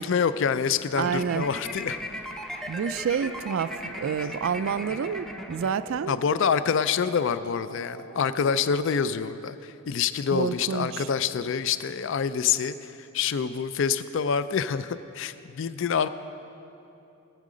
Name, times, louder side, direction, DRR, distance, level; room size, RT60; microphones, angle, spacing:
voice 1, 0.0-2.0 6.1-16.1, left 6 dB, 55° left, 13 dB, 0.4 m, -26 dB
sound 1, 1.0-6.3, equal, ahead, 0.5 m, -38 dB
voice 2, 1.0-1.4 2.7-6.2 10.3-11.1, right 7 dB, 60° right, 15 dB, 0.3 m, -28 dB
sound 2, 3.2-8.7, right 2 dB, 85° right, 0.8 m, -45 dB
19.0 x 7.5 x 5.0 m, 2.8 s
head